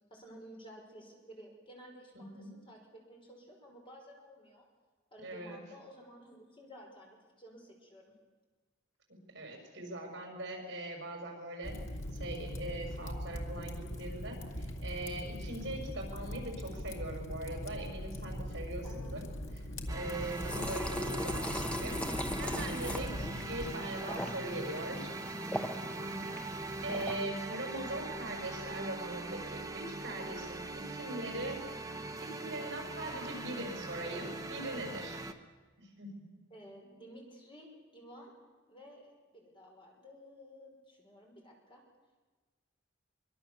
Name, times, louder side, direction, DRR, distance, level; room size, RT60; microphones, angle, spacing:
voice 1, 0.1-4.7 5.1-8.1 18.8-19.2 22.8-23.3 25.8-26.2 36.5-38.3 38.7-41.8, equal, 25° left, 0 dB, 5.8 m, -53 dB
voice 2, 2.1-2.5 5.2-5.6 9.3-11.7 12.1-19.2 19.7-23.1 23.5-25.1 26.8-31.6 32.2-35.2 35.8-36.1, right 1 dB, 60° right, 3 dB, 6.4 m, -41 dB
Fire, 11.6-23.7, equal, 85° left, 2.1 m, -41 dB
sound 1, 19.9-35.3, right 2 dB, 20° right, 1.2 m, -42 dB
sound 2, 20.1-27.2, equal, 5° left, 1.0 m, -39 dB
24.0 x 23.5 x 7.2 m, 1.3 s
head